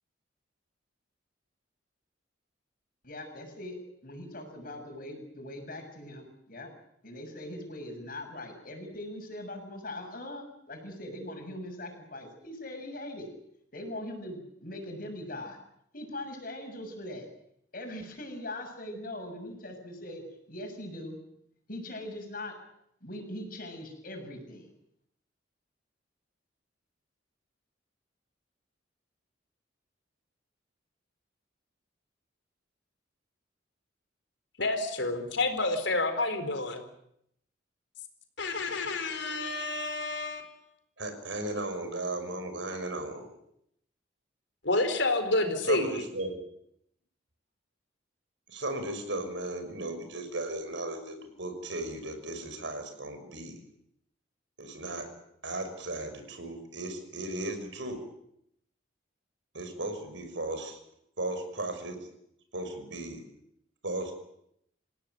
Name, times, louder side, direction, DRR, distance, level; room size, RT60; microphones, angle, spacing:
voice 1, 3.0-3.8 4.0-6.7 7.0-13.3 13.7-15.6 15.9-17.3 17.7-21.2 21.7-22.5 23.0-24.7, left 1 dB, 50° left, 4 dB, 7.0 m, -41 dB
voice 2, 34.6-36.8 38.4-40.5 44.6-46.0, left 2 dB, 70° left, 7 dB, 4.4 m, -29 dB
voice 3, 41.0-43.3 45.7-46.4 48.5-53.6 54.6-55.1 55.4-58.0 59.5-60.8 61.2-62.1 62.5-63.2 63.8-64.1, right 2 dB, 75° right, 7 dB, 5.9 m, -36 dB
28.0 x 17.0 x 9.4 m, 0.74 s
head